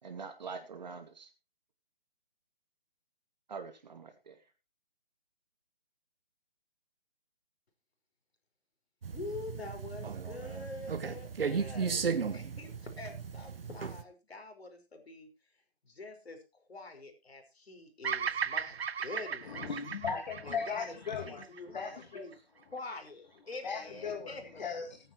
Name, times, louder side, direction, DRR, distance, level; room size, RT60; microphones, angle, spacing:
voice 1, 0.0-1.3 3.5-4.4, right 5 dB, 45° right, 7 dB, 2.2 m, -44 dB
sound 1, 9.0-14.0, right 6 dB, 65° right, 1.4 m, -36 dB
voice 2, 9.1-12.0 12.3-15.3 15.8-19.6 20.4-21.0 21.3-22.3 22.7-24.6, left 3 dB, 75° left, 5 dB, 5.4 m, -45 dB
Bird vocalization bird call bird song, 18.0-22.3, right 7 dB, 80° right, 0.7 m, -37 dB
voice 3, 19.4-22.3 23.6-25.1, left 6 dB, 45° left, 1 dB, 2.6 m, -38 dB
19.0 x 9.6 x 3.1 m, 0.28 s
hypercardioid pair, 165°, 31 cm